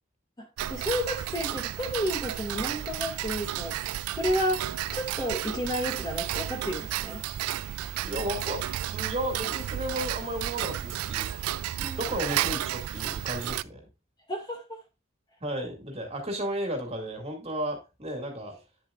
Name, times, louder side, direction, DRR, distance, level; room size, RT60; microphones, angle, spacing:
voice 1, 0.4-3.8 4.2-7.2 11.8-12.0 14.3-14.8, equal, 20° left, 1.9 m, -31 dB
Tick-tock, 0.6-13.6, right 12 dB, 85° right, 0.3 m, -32 dB
voice 2, 8.0-8.6 8.9-11.3 11.8-13.8 15.4-18.6, equal, 30° right, 2.2 m, -33 dB
9.9 x 7.4 x 2.4 m
head